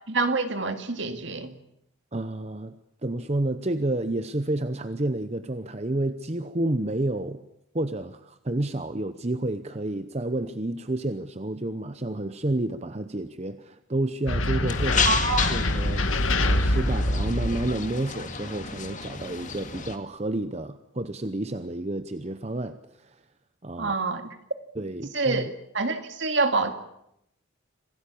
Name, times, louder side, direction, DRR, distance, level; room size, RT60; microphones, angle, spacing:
voice 1, 0.1-1.5 15.0-15.5 23.8-24.3 25.1-25.5 25.7-26.7, right 3 dB, 60° right, 7 dB, 2.2 m, -26 dB
voice 2, 2.1-7.5 7.7-23.2 23.6-23.9 24.7-25.5, right 1 dB, 30° right, 10 dB, 0.8 m, -30 dB
sound 1, 14.3-17.9, left 1 dB, 80° left, 1.8 m, -25 dB
sound 2, 14.7-20.0, left 5 dB, 35° left, 2.0 m, -31 dB
26.5 x 17.5 x 8.6 m, 0.80 s
head